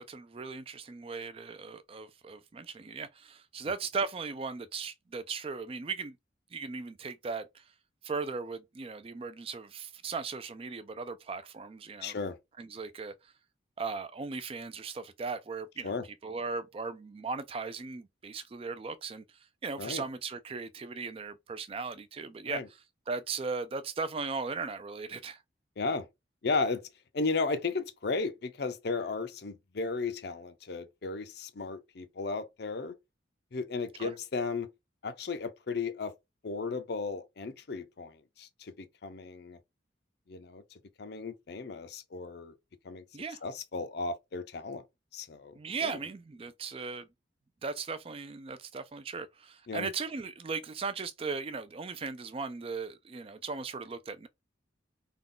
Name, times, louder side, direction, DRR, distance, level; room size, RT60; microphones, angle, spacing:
voice 1, 0.0-6.2 6.5-7.4 8.0-12.2 12.6-13.1 13.8-15.9 16.2-19.2 19.6-22.6 23.1-25.4 34.0-34.1 43.1-43.4 45.5-47.1 47.6-54.3, right 4 dB, 30° right, 0.3 m, -37 dB
voice 2, 12.0-12.4 15.8-16.1 19.8-20.0 22.5-22.7 25.8-26.1 26.4-26.8 27.1-32.9 33.5-34.7 35.0-36.1 36.4-39.6 40.3-40.6 41.0-42.5 42.8-43.0 43.4-44.8 45.1-46.0 49.7-49.9, left 4 dB, 55° left, 0.5 m, -35 dB
3.6 x 2.3 x 3.7 m
head